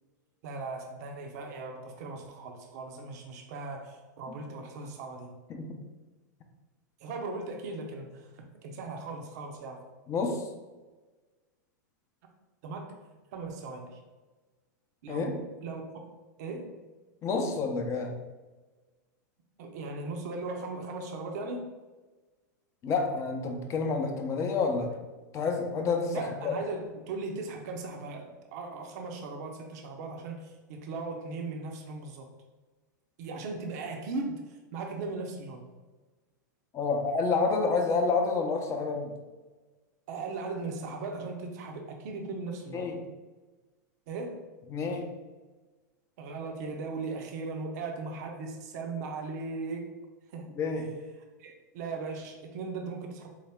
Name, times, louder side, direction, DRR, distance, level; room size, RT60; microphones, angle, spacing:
voice 1, 0.4-5.3 7.0-9.8 12.6-12.9 13.3-14.0 15.0-15.3 15.6-15.9 16.4-16.7 19.6-21.7 26.1-32.3 33.2-35.6 40.1-42.9 44.1-44.4 46.2-49.9 50.3-50.5 51.4-53.3, right 3 dB, 60° right, 2 dB, 0.6 m, -38 dB
voice 2, 10.1-10.5 15.1-15.3 17.2-18.2 22.8-25.0 25.3-26.5 36.7-39.1 42.7-43.0 44.7-45.1 50.6-50.9, left 4 dB, 30° left, 4 dB, 0.6 m, -29 dB
4.7 x 2.1 x 3.4 m, 1.3 s
hypercardioid pair, 105°, 10 cm